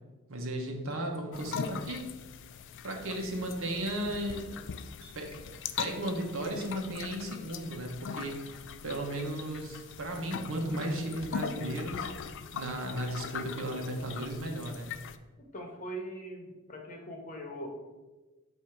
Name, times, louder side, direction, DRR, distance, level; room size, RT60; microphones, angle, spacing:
voice 1, 0.3-2.1 2.8-4.5 5.1-5.4 5.8-14.9, right 1 dB, 65° right, 2 dB, 1.1 m, -35 dB
Chink clink, 0.9-1.1 3.1-3.3 5.0-5.2 6.5-6.7, equal, 45° right, 1.5 m, -56 dB
sound 1, 1.3-15.2, left 7 dB, 55° left, 0.4 m, -41 dB
voice 2, 15.5-17.7, right 1 dB, 35° left, 1 dB, 1.1 m, -41 dB
7.9 x 2.8 x 5.9 m, 1.2 s
head